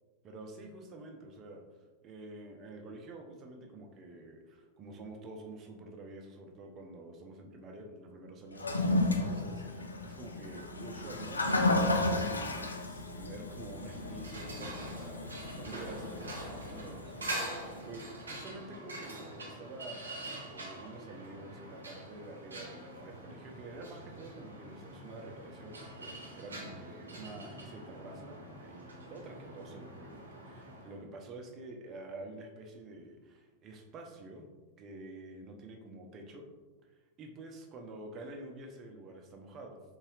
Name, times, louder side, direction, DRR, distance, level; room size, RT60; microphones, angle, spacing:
voice 1, 0.2-1.6 2.0-34.5 34.8-36.5 37.2-39.8, right 2 dB, 30° right, 2 dB, 0.6 m, -48 dB
Toilet flush, 8.5-17.8, left 2 dB, 75° left, 0.4 m, -33 dB
sound 1, 13.5-31.0, right 1 dB, 75° right, 0.8 m, -45 dB
4.2 x 3.9 x 2.3 m, 1.3 s
figure-of-eight pair, 90°, 0 cm